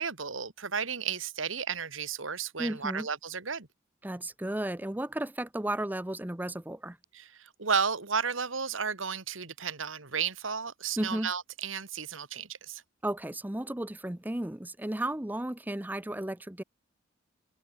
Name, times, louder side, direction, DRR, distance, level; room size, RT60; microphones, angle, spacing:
voice 1, 0.0-3.7 7.1-12.8, right 6 dB, 85° right, 2.1 m, -33 dB
voice 2, 2.6-3.1 4.0-7.0 11.0-11.3 13.0-16.6, right 1 dB, 10° right, 0.6 m, -34 dB
head